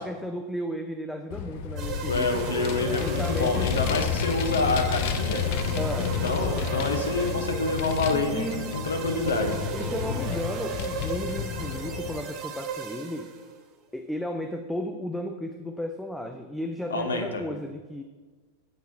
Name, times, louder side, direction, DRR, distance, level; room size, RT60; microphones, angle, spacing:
voice 1, 0.0-2.5 3.0-3.7 5.8-6.2 8.1-8.8 9.7-13.3 13.9-18.0, equal, 5° left, 5 dB, 0.5 m, -34 dB
Vehicle, 1.3-12.2, left 7 dB, 50° left, 0.7 m, -31 dB
sound 1, 1.8-13.5, right 6 dB, 35° right, 0.9 m, -36 dB
voice 2, 2.0-5.5 6.0-8.5 8.7-9.6 16.9-17.4, left 3 dB, 70° left, 4 dB, 1.2 m, -27 dB
8.0 x 6.4 x 4.5 m, 1.3 s
figure-of-eight pair, 90°, 0 cm